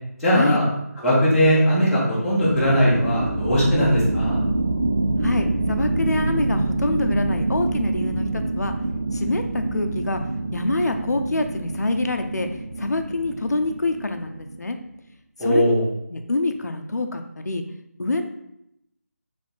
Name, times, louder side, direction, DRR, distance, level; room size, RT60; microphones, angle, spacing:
voice 1, 0.2-0.6 1.0-4.4 15.4-15.8, equal, ahead, -13 dB, 0.7 m, -19 dB
sound 1, 2.4-14.7, right 2 dB, 25° right, 0.3 m, -26 dB
voice 2, 5.2-8.7 9.1-10.2 10.5-12.5 12.8-14.8 15.4-15.7 16.1-17.6 18.0-18.2, left 2 dB, 80° left, 6 dB, 0.6 m, -26 dB
3.3 x 3.3 x 4.1 m, 0.80 s
figure-of-eight pair, 170°, 9 cm